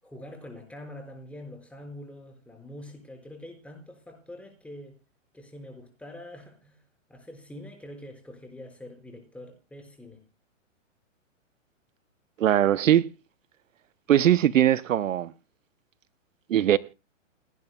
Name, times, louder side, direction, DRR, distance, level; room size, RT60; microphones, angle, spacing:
voice 1, 0.0-5.0 5.3-6.8 7.1-10.2, left 1 dB, 5° left, 5.0 m, -44 dB
voice 2, 12.4-13.1 14.1-15.3 16.5-16.8, right 11 dB, 75° right, 0.8 m, -20 dB
29.5 x 11.0 x 2.2 m
hypercardioid pair, 130°, 39 cm